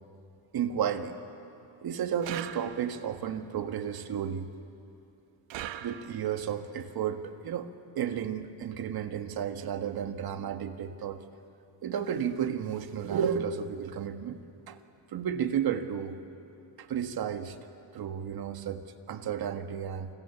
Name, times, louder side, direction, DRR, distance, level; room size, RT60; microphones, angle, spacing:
voice 1, 0.5-1.2 1.8-4.5 5.8-11.2 11.8-14.4 14.7-14.8 15.1-16.2 16.8-17.6 17.9-20.1, right 8 dB, 55° right, 7 dB, 1.7 m, -32 dB
sound 1, 2.2-3.1 5.5-6.4, right 11 dB, 70° right, 1.2 m, -40 dB
28.5 x 25.5 x 7.2 m, 2.7 s
cardioid pair, 125°, 45 cm